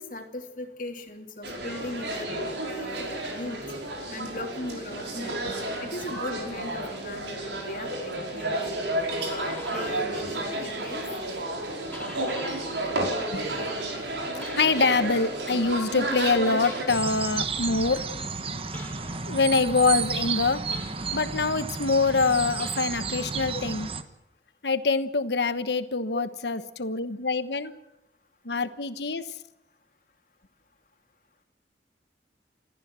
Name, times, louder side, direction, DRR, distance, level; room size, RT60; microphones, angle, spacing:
voice 1, 0.0-3.6 4.1-5.4 5.8-8.8 9.2-11.1 23.5-23.6 25.9-26.2 26.6-26.7, left 1 dB, 50° left, 4 dB, 3.0 m, -38 dB
sound 1, 1.4-16.8, right 1 dB, 90° right, 5.5 m, -31 dB
sound 2, 8.9-10.2 10.5-12.9 13.2-15.1 16.6-17.3 18.7-19.4 20.7-21.4 22.5-23.3, left 2 dB, 10° left, 3.7 m, -45 dB
voice 2, 13.0-13.5 14.6-18.0 19.3-20.6 21.1-23.9 24.6-27.7 28.4-29.3, left 4 dB, 75° left, 12 dB, 1.2 m, -25 dB
sound 3, 16.9-24.0, right 5 dB, 30° right, 1.2 m, -32 dB
28.5 x 14.5 x 7.7 m, 0.91 s
head